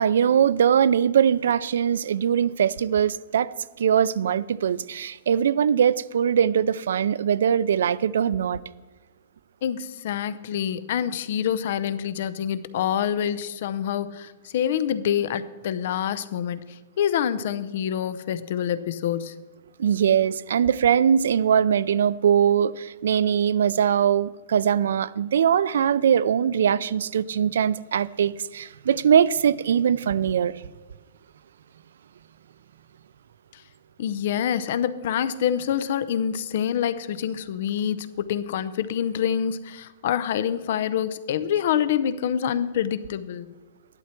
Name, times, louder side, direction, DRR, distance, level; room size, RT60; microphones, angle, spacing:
voice 1, 0.0-8.6 19.8-30.6, right 8 dB, 80° right, 0.4 m, -21 dB
voice 2, 9.6-19.3 33.5-33.6 34.0-43.6, left 9 dB, 50° left, 0.6 m, -26 dB
13.0 x 11.5 x 4.4 m
supercardioid pair, 175°, 0 cm